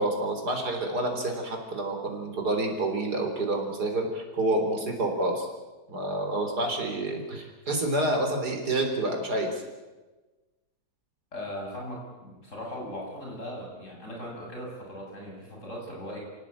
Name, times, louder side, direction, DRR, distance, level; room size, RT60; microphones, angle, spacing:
voice 1, 0.0-5.5 5.9-9.6, right 1 dB, 70° right, 2 dB, 4.4 m, -28 dB
voice 2, 11.3-16.2, equal, 45° left, -1 dB, 8.1 m, -38 dB
26.5 x 17.5 x 8.8 m, 1.2 s
omnidirectional pair, 1.8 m